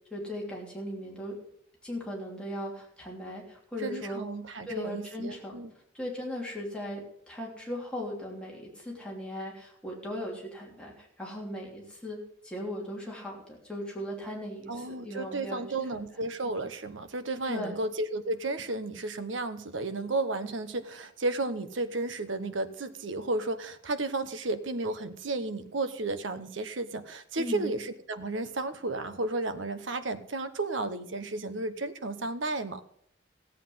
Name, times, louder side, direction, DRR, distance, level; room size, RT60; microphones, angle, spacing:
voice 1, 0.1-1.4 1.8-4.3 4.7-5.5 5.9-15.6 15.9-16.0 17.5-17.8 27.4-27.8, left 1 dB, 5° left, -3 dB, 3.0 m, -38 dB
voice 2, 3.8-5.7 14.7-32.8, right 2 dB, 75° right, 11 dB, 1.0 m, -33 dB
15.0 x 8.3 x 5.6 m, 0.70 s
head